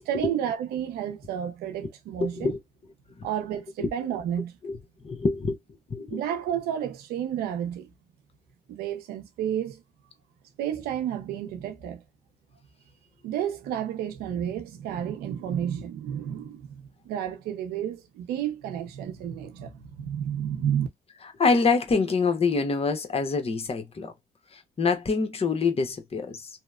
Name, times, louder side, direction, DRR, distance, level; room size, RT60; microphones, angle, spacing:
voice 1, 0.1-2.5 3.2-4.5 6.1-7.9 8.7-9.8 10.6-12.0 13.2-20.9, right 9 dB, 85° right, 0.6 m, -31 dB
voice 2, 2.2-2.6 3.2-3.3 3.8-3.9 4.6-4.8 5.0-5.6 5.9-6.2 21.2-24.1 24.5-26.5, left 4 dB, 40° left, 0.9 m, -26 dB
2.8 x 2.0 x 2.3 m
supercardioid pair, 55°, 16 cm